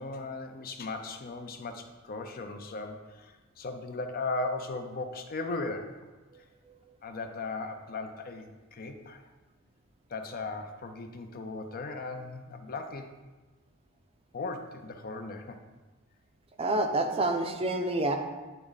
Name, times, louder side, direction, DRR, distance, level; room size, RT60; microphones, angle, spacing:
voice 1, 0.0-6.1 7.0-9.2 10.1-13.1 14.3-15.6, left 3 dB, 45° left, 6 dB, 0.6 m, -37 dB
voice 2, 16.6-18.1, right 2 dB, 30° right, 5 dB, 0.5 m, -27 dB
9.1 x 3.5 x 3.9 m, 1.2 s
head